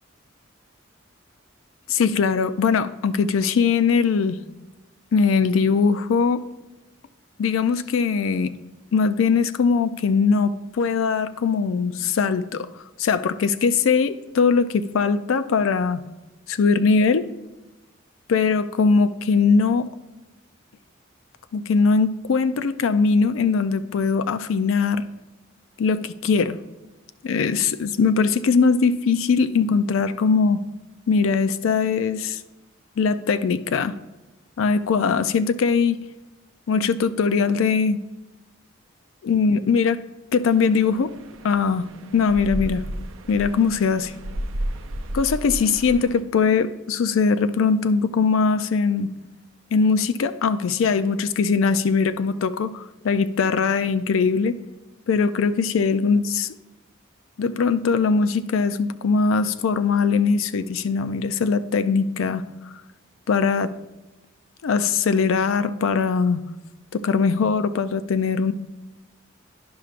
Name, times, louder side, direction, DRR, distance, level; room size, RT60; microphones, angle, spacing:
voice 1, 1.9-4.4 5.1-6.5 7.4-8.5 8.9-12.7 13.0-16.0 16.5-17.3 18.3-19.9 21.5-25.0 25.8-26.6 27.2-30.6 31.1-32.4 33.0-34.0 34.6-36.0 36.7-38.0 39.2-40.0 40.3-41.1 41.4-41.9 42.1-42.8 43.3-44.1 45.1-49.1 49.7-54.6 55.1-56.5 57.4-62.4 63.3-63.7 64.6-66.4 66.9-68.5, left 5 dB, 75° left, 12 dB, 0.4 m, -21 dB
sound 1, 40.4-46.2, right 1 dB, 75° right, 0.5 m, -33 dB
10.5 x 5.8 x 2.5 m, 1.1 s
head